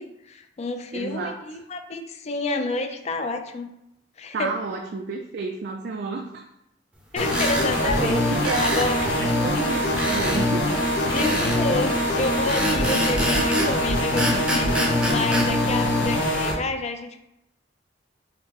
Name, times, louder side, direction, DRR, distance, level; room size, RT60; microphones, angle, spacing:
voice 1, 0.0-3.7 4.2-4.5 7.1-9.1 11.1-17.2, left 3 dB, 35° left, 6 dB, 0.4 m, -29 dB
voice 2, 0.9-1.4 4.3-6.5 7.8-8.8 9.2-10.8, right 4 dB, 60° right, 3 dB, 0.3 m, -31 dB
sound 1, 7.2-16.5, left 1 dB, 80° left, 0.8 m, -23 dB
sound 2, 7.3-7.7 8.4-8.9 10.0-10.4 11.2-11.6 12.5-13.7 14.2-15.5, equal, 5° right, 0.6 m, -26 dB
4.2 x 2.9 x 2.9 m, 0.84 s
head